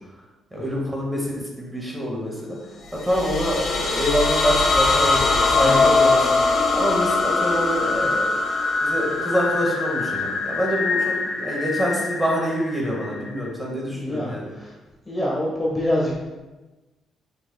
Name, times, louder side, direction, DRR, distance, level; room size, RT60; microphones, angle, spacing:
voice 1, 0.5-2.6 3.0-8.4 8.8-14.5, equal, 10° right, -3 dB, 1.9 m, -26 dB
sound 1, 2.9-13.5, left 3 dB, 45° left, 1.5 m, -22 dB
voice 2, 13.9-14.7 15.0-16.2, left 1 dB, 20° left, -5 dB, 1.4 m, -26 dB
6.9 x 5.7 x 2.4 m, 1.2 s
cardioid pair, 90°, 0 cm